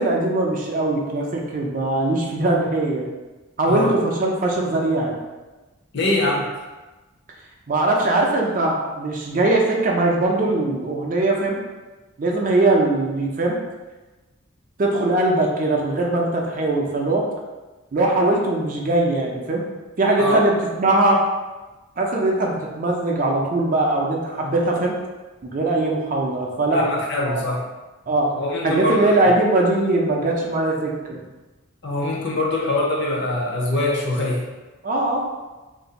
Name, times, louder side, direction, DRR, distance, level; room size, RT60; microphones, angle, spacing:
voice 1, 0.0-3.1 3.6-5.2 7.7-11.6 12.2-13.6 14.8-17.3 17.9-19.6 20.0-21.2 22.0-25.0 25.4-27.5 28.1-28.4 28.6-31.2 34.8-35.3, right 2 dB, 40° right, -1 dB, 0.4 m, -21 dB
voice 2, 5.9-6.5 20.2-20.4 26.7-27.6 28.4-29.1 31.8-34.4, left 2 dB, 55° left, -1 dB, 0.6 m, -23 dB
2.6 x 2.4 x 3.9 m, 1.2 s
head